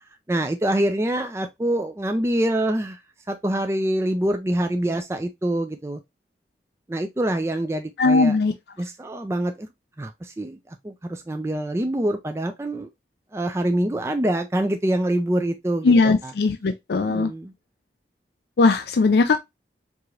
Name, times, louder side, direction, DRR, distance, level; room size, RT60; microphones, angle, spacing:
voice 1, 0.3-3.0 3.3-6.0 6.9-8.4 8.8-9.7 10.0-12.9 13.3-16.3 17.0-17.5, right 1 dB, 15° right, 0.4 m, -25 dB
voice 2, 8.0-8.5 15.8-17.3 18.6-19.4, left 3 dB, 65° left, 0.4 m, -19 dB
4.7 x 2.9 x 2.4 m
head